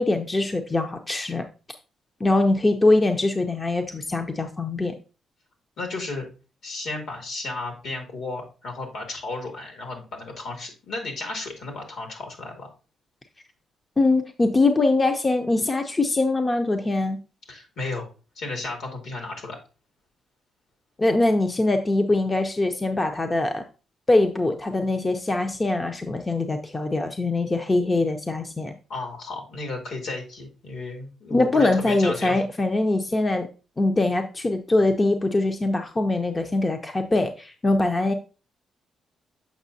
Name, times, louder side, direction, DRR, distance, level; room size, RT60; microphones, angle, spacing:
voice 1, 0.0-1.4 2.2-4.9 14.0-17.2 21.0-23.6 24.1-28.7 31.3-33.5 33.8-38.1, left 2 dB, 20° left, 6 dB, 0.6 m, -22 dB
voice 2, 5.8-6.3 6.6-12.7 17.5-18.1 18.4-19.6 28.9-32.4, left 3 dB, 75° left, 2 dB, 2.3 m, -33 dB
7.2 x 5.6 x 2.7 m, 0.33 s
cardioid pair, 120°, 0 cm